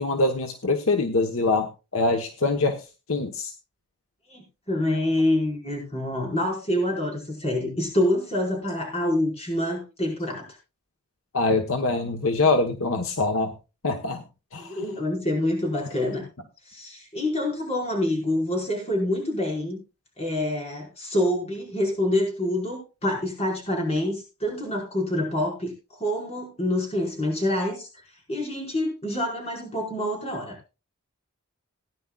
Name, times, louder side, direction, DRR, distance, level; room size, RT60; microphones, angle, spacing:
voice 1, 0.0-3.5 11.3-13.5 13.8-14.2 14.5-14.9, left 3 dB, 75° left, 5 dB, 1.1 m, -24 dB
voice 2, 4.3-10.6 14.6-16.2 16.7-19.8 20.2-27.9 28.3-30.6, left 1 dB, 30° left, -1 dB, 4.8 m, -26 dB
18.0 x 10.0 x 2.3 m, 0.29 s
head